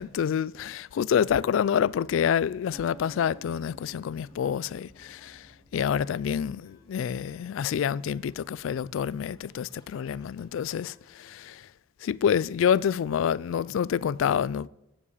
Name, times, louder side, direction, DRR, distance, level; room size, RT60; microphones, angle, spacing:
voice 1, 0.0-11.7 12.0-14.7, left 8 dB, 75° left, 0.3 m, -27 dB
sound 1, 2.0-7.3, left 1 dB, 35° right, 2.0 m, -62 dB
sound 2, 2.7-6.6, right 1 dB, 5° right, 1.2 m, -55 dB
Scratching (performance technique), 2.9-11.4, left 2 dB, 20° left, 2.1 m, -60 dB
9.5 x 7.4 x 8.2 m
head